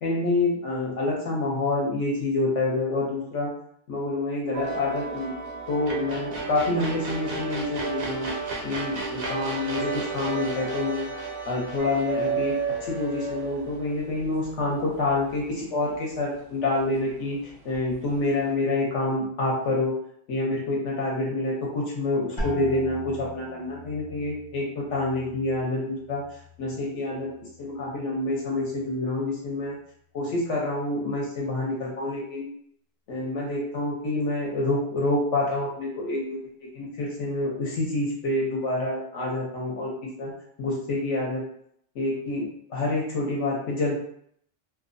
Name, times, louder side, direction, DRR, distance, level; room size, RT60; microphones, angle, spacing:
voice 1, 0.0-3.5 3.9-5.4 5.7-8.3 8.6-11.1 11.5-19.9 20.3-26.2 26.6-27.3 27.6-29.8 30.1-32.5 33.1-40.3 40.6-41.4 41.9-43.9, left 2 dB, 70° left, -4 dB, 1.0 m, -27 dB
sound 1, 4.5-13.8, right 3 dB, 60° right, 0.7 m, -33 dB
sound 2, 11.8-14.2 15.9-16.0 17.7-17.9, right 6 dB, 85° right, 1.1 m, -29 dB
sound 3, 22.4-28.0 28.3-29.0 29.6-30.0, left 2 dB, 45° left, 0.3 m, -41 dB
2.8 x 2.0 x 2.5 m, 0.68 s
omnidirectional pair, 1.3 m